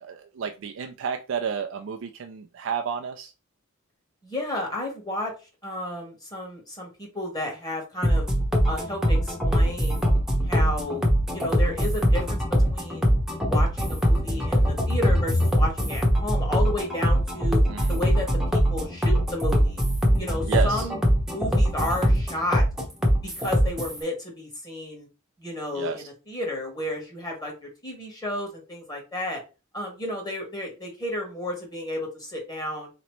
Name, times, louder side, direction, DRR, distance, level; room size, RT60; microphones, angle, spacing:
voice 1, 0.0-3.3 17.7-17.9 20.5-20.8 25.7-26.0, right 7 dB, 60° right, 5 dB, 0.4 m, -31 dB
voice 2, 4.2-5.3 5.6-8.3 8.7-10.0 10.4-12.4 12.7-13.1 13.4-17.6 17.9-18.3 18.5-19.8 20.2-22.6 23.2-25.1 25.4-29.4 29.7-32.9, left 1 dB, 20° left, 0 dB, 1.3 m, -32 dB
sound 1, 8.0-24.0, equal, 5° right, 0.8 m, -22 dB
4.1 x 2.9 x 3.1 m, 0.31 s
head